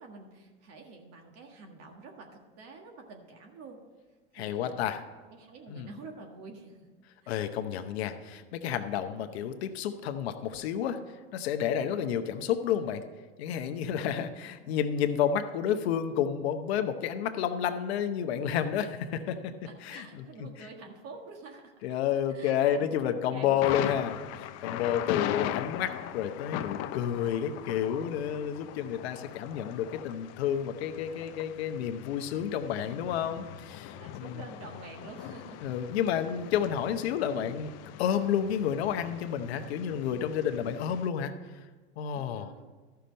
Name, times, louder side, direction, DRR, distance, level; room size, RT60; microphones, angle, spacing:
voice 1, 0.0-3.8 4.3-4.9 5.3-6.8 7.2-7.5 11.9-12.1 19.6-21.9 22.3-22.8 23.3-23.8 33.9-35.7 42.1-42.6, right 3 dB, 55° right, 2 dB, 1.7 m, -48 dB
voice 2, 4.3-5.0 5.7-5.9 7.3-11.0 11.3-13.0 13.4-19.5 19.8-20.7 21.8-34.4 35.6-37.7 38.0-41.3 42.0-42.5, left 9 dB, 85° left, 8 dB, 0.9 m, -30 dB
Thunder, 23.6-41.1, left 12 dB, 55° left, 0.6 m, -40 dB
13.0 x 5.7 x 5.3 m, 1.4 s
supercardioid pair, 105°, 31 cm